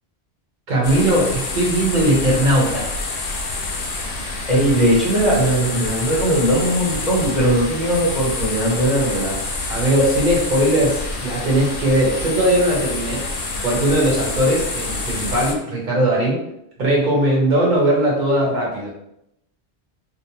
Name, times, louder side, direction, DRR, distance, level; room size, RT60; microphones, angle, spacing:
voice 1, 0.7-2.9 9.7-13.2 13.6-16.4 16.8-18.9, right 1 dB, 50° right, -3 dB, 0.9 m, -19 dB
sound 1, 0.8-15.5, left 3 dB, 65° left, 0.7 m, -27 dB
voice 2, 4.5-9.4, right 1 dB, ahead, -7 dB, 0.8 m, -19 dB
2.6 x 2.0 x 2.8 m, 0.82 s
omnidirectional pair, 1.1 m